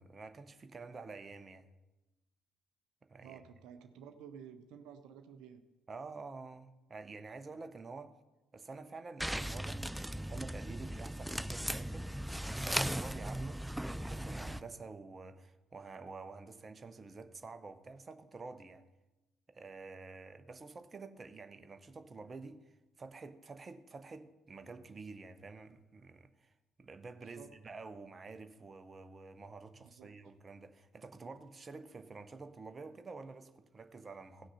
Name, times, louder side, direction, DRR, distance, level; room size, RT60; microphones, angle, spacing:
voice 1, 0.0-1.7 3.1-3.4 5.9-8.1 8.5-12.1 12.5-18.8 19.5-22.6 23.0-26.5 26.8-34.5, right 4 dB, 30° right, 0.9 m, -49 dB
voice 2, 3.2-5.6 27.3-27.5 29.7-30.1, right 8 dB, 60° right, 0.7 m, -52 dB
sound 1, 9.2-14.6, right 1 dB, 5° right, 0.4 m, -38 dB
16.5 x 6.3 x 5.6 m
figure-of-eight pair, 45°, 0 cm